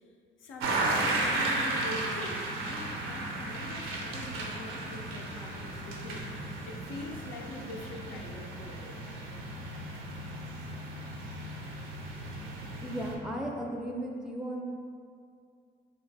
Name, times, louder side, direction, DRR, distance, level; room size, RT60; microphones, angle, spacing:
voice 1, 0.4-9.0, left 2 dB, 85° left, 0 dB, 0.5 m, -43 dB
sound 1, 0.6-13.1, right 2 dB, 90° right, 0.5 m, -35 dB
voice 2, 12.8-14.7, right 1 dB, 5° right, -2 dB, 0.4 m, -35 dB
3.0 x 2.4 x 3.9 m, 2.3 s
cardioid pair, 90°, 20 cm